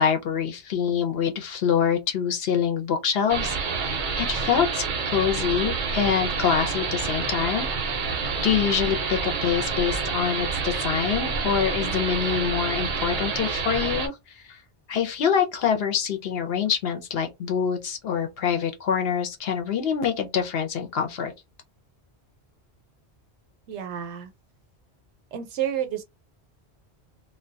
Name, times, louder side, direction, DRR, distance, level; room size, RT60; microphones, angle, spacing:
voice 1, 0.0-7.7 8.4-14.1 14.5-14.6 14.9-21.3, left 7 dB, 65° left, 0.8 m, -25 dB
sound 1, 3.3-14.1, right 5 dB, 55° right, 0.6 m, -28 dB
voice 2, 23.7-24.3 25.3-26.0, right 10 dB, 80° right, 0.9 m, -30 dB
2.2 x 2.2 x 2.5 m
omnidirectional pair, 1.2 m